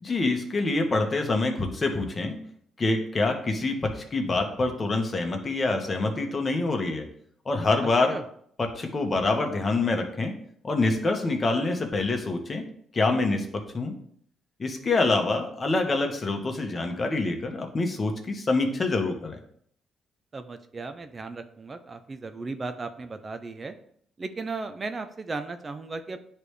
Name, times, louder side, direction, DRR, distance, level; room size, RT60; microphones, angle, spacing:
voice 1, 0.0-2.4 2.8-7.0 7.4-8.2 8.6-10.3 10.6-12.6 12.9-13.9 14.6-19.4, left 3 dB, 35° left, 4 dB, 1.2 m, -26 dB
voice 2, 20.3-23.7 24.2-26.2, right 3 dB, 35° right, 9 dB, 0.5 m, -36 dB
9.8 x 3.3 x 3.3 m, 0.66 s
cardioid pair, 90°, 0 cm